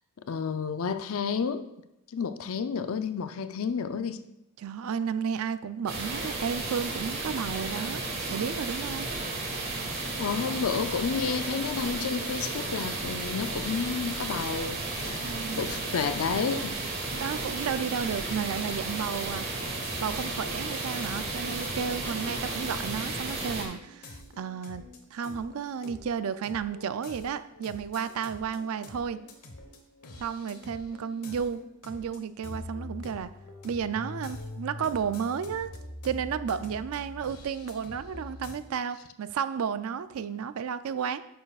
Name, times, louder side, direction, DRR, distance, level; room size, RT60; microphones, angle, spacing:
voice 1, 0.3-1.7 2.1-4.2 10.2-15.2 15.5-16.8, left 6 dB, 70° left, 0.5 m, -31 dB
voice 2, 4.6-8.0 8.3-9.1 15.2-15.6 17.0-19.5 20.0-24.8 25.1-29.2 30.2-33.3 33.6-35.7 36.0-41.2, right 7 dB, 75° right, 0.4 m, -32 dB
sound 1, 5.9-23.6, right 2 dB, 45° right, 1.5 m, -33 dB
sound 2, 19.1-38.6, left 2 dB, 90° left, 1.2 m, -45 dB
10.0 x 6.5 x 2.4 m
head